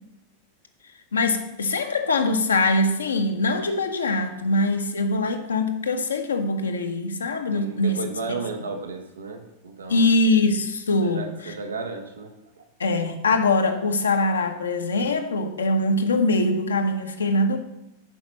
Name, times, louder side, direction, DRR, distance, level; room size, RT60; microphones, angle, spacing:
voice 1, 1.1-8.0 9.9-11.5 12.8-17.6, left 2 dB, 70° left, 6 dB, 1.0 m, -23 dB
voice 2, 7.5-10.1 11.0-12.7, right 4 dB, 70° right, 5 dB, 1.2 m, -34 dB
10.0 x 5.2 x 6.4 m, 0.90 s
figure-of-eight pair, 90°, 0 cm